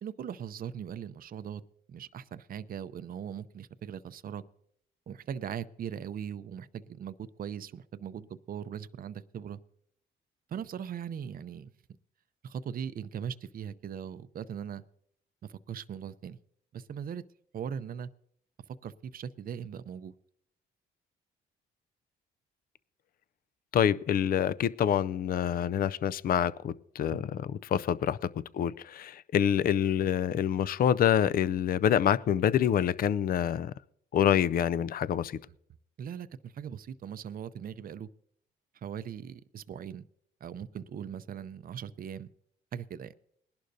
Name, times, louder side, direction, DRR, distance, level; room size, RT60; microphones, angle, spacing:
voice 1, 0.0-1.6 1.9-4.4 5.1-9.6 10.5-11.7 12.4-14.8 15.4-16.4 16.7-17.2 17.5-18.1 18.8-20.1 27.1-27.2 36.0-38.1 38.7-40.1 40.4-42.3 42.7-43.1, right 8 dB, 45° right, 0.6 m, -39 dB
voice 2, 23.7-33.7 34.1-35.4, left 9 dB, 50° left, 0.4 m, -27 dB
21.0 x 11.5 x 2.7 m
cardioid pair, 90°, 20 cm